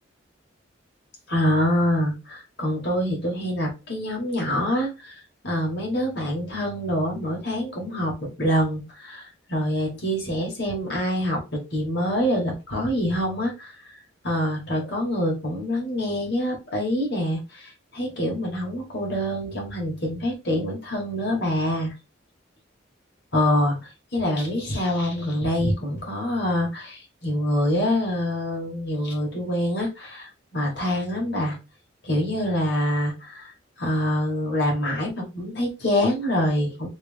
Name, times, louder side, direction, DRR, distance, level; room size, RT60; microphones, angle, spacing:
voice 1, 1.3-14.0 14.2-21.9 23.3-31.6 32.0-33.5 33.8-36.9, equal, 55° left, -1 dB, 1.6 m, -25 dB
3.3 x 2.9 x 3.4 m, 0.27 s
head